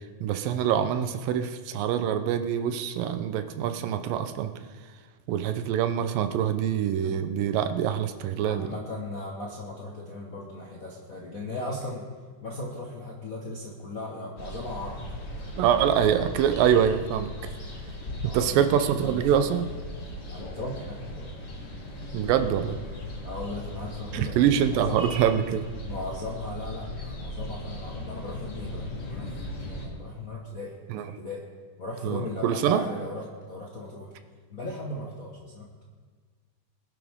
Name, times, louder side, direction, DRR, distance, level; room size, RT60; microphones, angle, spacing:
voice 1, 0.2-4.5 5.3-8.8 15.6-17.3 18.2-19.7 22.1-22.8 24.1-25.6 30.9-31.1 32.0-32.8, right 9 dB, 80° right, 9 dB, 2.5 m, -25 dB
voice 2, 8.4-12.1 12.4-15.0 18.2-19.4 20.3-21.3 23.2-25.0 25.9-29.4 29.7-31.4 31.8-34.1 34.5-35.8, left 2 dB, 80° left, -4 dB, 0.7 m, -37 dB
sound 1, 14.4-29.9, left 1 dB, 35° left, 1.0 m, -38 dB
21.0 x 11.0 x 3.7 m, 1.5 s
omnidirectional pair, 4.0 m